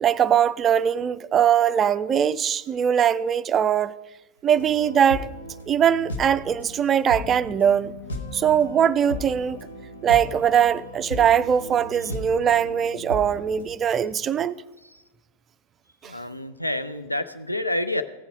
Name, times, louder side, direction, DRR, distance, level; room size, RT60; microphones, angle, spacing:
voice 1, 0.0-3.9 4.4-5.3 5.7-7.9 8.3-9.6 10.0-14.5, right 8 dB, 25° right, 0.3 m, -21 dB
sound 1, 4.5-13.7, left 1 dB, 70° left, 1.1 m, -36 dB
voice 2, 16.0-18.0, left 1 dB, 85° left, 0.5 m, -28 dB
16.0 x 7.2 x 5.0 m
figure-of-eight pair, 90°, 0 cm